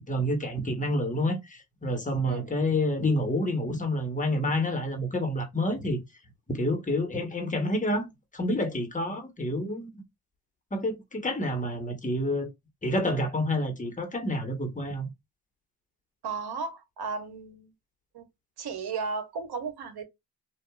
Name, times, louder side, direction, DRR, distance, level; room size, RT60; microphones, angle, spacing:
voice 1, 0.1-6.0 6.5-9.9 10.7-12.5 12.8-15.1, left 1 dB, 20° left, 1.1 m, -28 dB
voice 2, 2.2-2.5 16.2-17.7 18.1-18.2 18.6-20.0, right 5 dB, 75° right, 1.1 m, -34 dB
2.8 x 2.4 x 2.3 m
cardioid pair, 65°, 39 cm